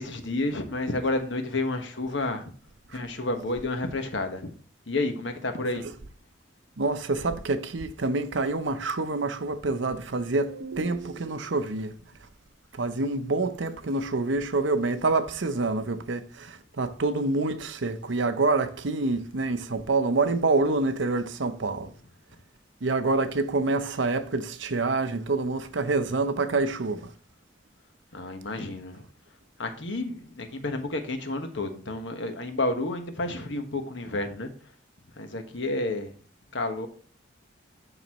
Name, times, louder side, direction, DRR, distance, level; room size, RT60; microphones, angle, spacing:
voice 1, 0.0-2.5 2.9-4.5 4.9-5.8 28.1-29.0 29.6-34.5 35.2-36.1 36.5-36.9, left 2 dB, 70° left, 1.3 m, -30 dB
voice 2, 6.8-11.9 12.7-21.9 22.8-27.1, right 3 dB, 75° right, 0.8 m, -27 dB
12.0 x 4.1 x 3.0 m
head